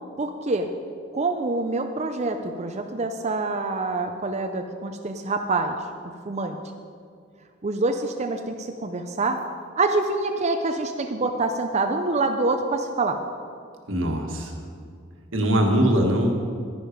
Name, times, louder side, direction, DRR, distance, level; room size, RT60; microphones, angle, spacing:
voice 1, 0.2-0.7 1.1-5.8 6.3-6.6 7.6-9.4 9.8-13.2, right 3 dB, 35° right, 5 dB, 0.6 m, -26 dB
voice 2, 13.9-14.5 15.3-16.3, equal, 75° right, 2 dB, 1.6 m, -21 dB
11.0 x 10.0 x 5.1 m, 2.2 s
head